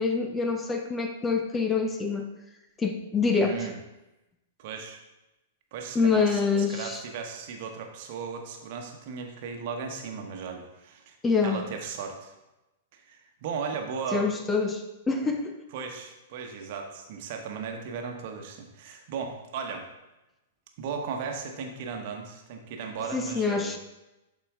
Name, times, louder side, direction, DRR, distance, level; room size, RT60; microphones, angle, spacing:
voice 1, 0.0-2.3 2.8-3.7 5.9-7.0 11.2-11.6 14.1-15.5 23.1-23.8, left 4 dB, 15° left, 5 dB, 0.7 m, -26 dB
voice 2, 3.4-3.8 4.6-5.0 5.7-6.4 6.7-11.2 11.4-12.3 12.9-14.3 15.7-19.9 20.8-23.7, right 5 dB, 45° right, 3 dB, 1.1 m, -36 dB
11.5 x 4.4 x 3.6 m, 0.99 s
figure-of-eight pair, 105°, 0 cm